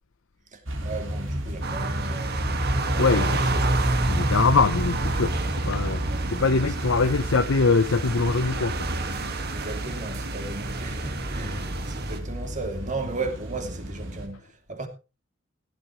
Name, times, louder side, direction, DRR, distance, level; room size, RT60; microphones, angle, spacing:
voice 1, 0.5-3.5 3.9-4.0 6.1-6.2 9.5-14.9, right 3 dB, 40° right, 2.8 m, -35 dB
sound 1, 0.7-14.3, equal, 70° right, 3.6 m, -32 dB
sound 2, 1.6-12.2, right 2 dB, 55° right, 1.9 m, -29 dB
voice 2, 3.0-3.4 4.1-8.9, left 4 dB, 75° left, 0.7 m, -23 dB
17.0 x 12.0 x 3.2 m
head